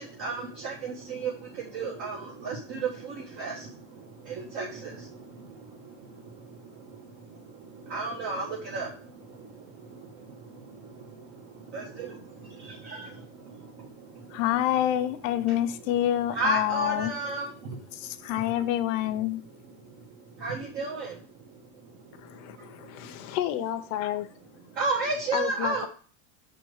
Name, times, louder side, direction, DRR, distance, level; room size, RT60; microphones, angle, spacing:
voice 1, 0.0-14.8 15.4-18.7 19.3-23.4 24.7-25.9, right 3 dB, 45° right, 1.4 m, -36 dB
voice 2, 14.3-17.1 18.0-19.4, left 12 dB, 75° left, 0.9 m, -26 dB
voice 3, 22.2-24.3 25.3-25.9, left 12 dB, 45° left, 0.9 m, -32 dB
6.2 x 4.4 x 6.4 m
cardioid pair, 170°, 39 cm